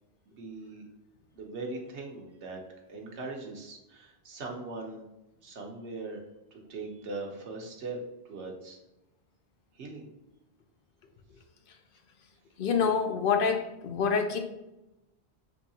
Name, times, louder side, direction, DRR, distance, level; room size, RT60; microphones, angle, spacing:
voice 1, 0.4-0.8 1.3-2.6 2.9-5.0 5.4-6.2 6.5-8.0 8.3-8.8 9.7-10.0, right 3 dB, 90° right, 1 dB, 1.2 m, -40 dB
voice 2, 12.6-14.4, left 6 dB, 60° left, 5 dB, 0.8 m, -26 dB
6.8 x 2.7 x 2.7 m, 0.94 s
omnidirectional pair, 1.1 m